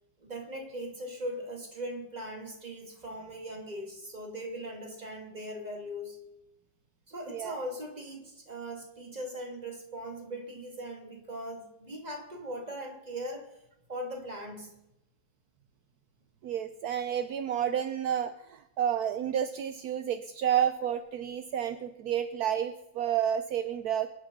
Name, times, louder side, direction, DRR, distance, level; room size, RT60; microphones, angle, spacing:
voice 1, 0.2-6.2 7.1-13.5 13.9-14.7, equal, 20° right, 2 dB, 2.4 m, -40 dB
voice 2, 16.4-24.1, right 9 dB, 65° right, 10 dB, 0.9 m, -30 dB
22.5 x 9.8 x 5.3 m, 0.88 s
omnidirectional pair, 2.3 m